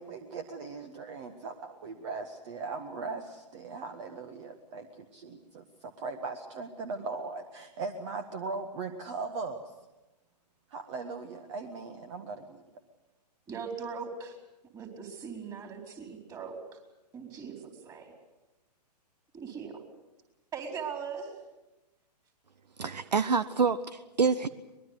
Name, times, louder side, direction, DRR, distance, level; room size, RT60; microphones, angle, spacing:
voice 1, 0.0-9.7 10.7-12.6, right 4 dB, 45° right, 8 dB, 1.8 m, -39 dB
voice 2, 13.5-14.4 14.7-16.6 17.1-18.1 19.3-19.8 20.5-21.4, right 6 dB, 15° right, 4 dB, 4.3 m, -40 dB
voice 3, 22.8-24.5, right 5 dB, 75° right, 16 dB, 0.9 m, -27 dB
23.5 x 21.5 x 8.2 m, 1.0 s
figure-of-eight pair, 120°, 21 cm